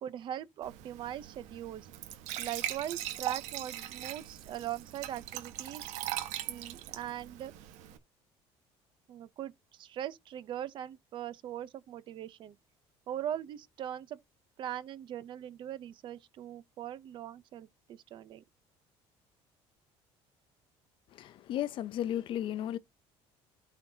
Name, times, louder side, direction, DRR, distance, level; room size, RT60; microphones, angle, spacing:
voice 1, 0.0-1.9 2.4-5.8 6.5-7.5 9.1-12.6 13.1-14.2 14.6-18.4, right 11 dB, 45° right, 0.6 m, -40 dB
Glass / Trickle dribble / Fill (with liquid), 0.6-8.0, right 13 dB, 85° right, 1.4 m, -40 dB
voice 2, 21.1-22.8, left 11 dB, 45° left, 0.6 m, -34 dB
13.0 x 4.4 x 2.8 m
cardioid pair, 165°, 12 cm